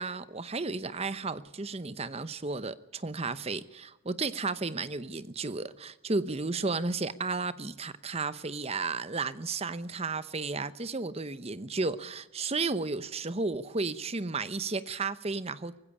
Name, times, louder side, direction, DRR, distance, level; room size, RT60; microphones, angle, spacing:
voice 1, 0.0-15.8, right 3 dB, 30° right, 0.8 m, -33 dB
19.0 x 16.0 x 8.6 m
head